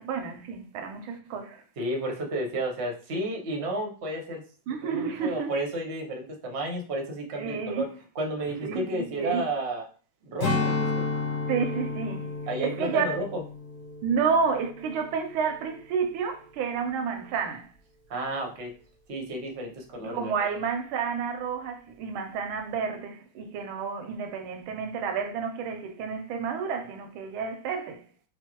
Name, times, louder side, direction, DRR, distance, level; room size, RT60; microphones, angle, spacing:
voice 1, 0.0-1.6 4.7-5.6 7.3-7.9 8.6-9.4 11.5-12.3 12.6-13.1 14.0-17.7 20.0-28.0, right 6 dB, 90° right, 1.5 m, -30 dB
voice 2, 1.8-4.4 4.8-7.9 8.1-9.9 10.2-11.1 12.5-13.4 18.1-18.7 19.1-20.3, right 1 dB, 50° right, 0.8 m, -32 dB
Strum, 10.4-15.1 15.5-15.7, left 3 dB, 55° left, 1.9 m, -31 dB
4.5 x 2.3 x 2.9 m
omnidirectional pair, 2.2 m